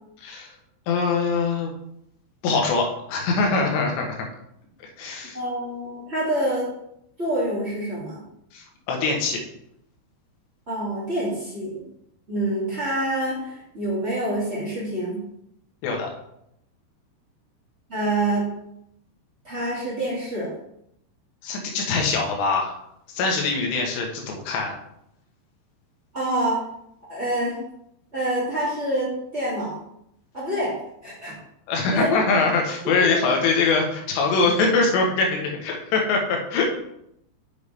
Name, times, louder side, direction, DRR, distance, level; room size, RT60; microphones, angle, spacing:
voice 1, 0.2-0.5 0.9-1.7 2.4-4.1 4.8-5.4 8.5-9.4 15.8-16.1 21.4-22.8 23.1-24.8 31.7-36.8, left 4 dB, 70° left, 1 dB, 3.2 m, -23 dB
voice 2, 5.3-6.7 7.2-8.2 10.7-11.8 12.3-15.2 17.9-18.5 19.4-20.5 26.1-26.6 27.1-27.6 28.1-29.8 30.3-30.8 31.0-31.3 31.9-32.1 33.3-33.4, right 1 dB, 40° right, -9 dB, 0.9 m, -26 dB
6.9 x 6.7 x 3.3 m, 0.77 s
omnidirectional pair, 5.4 m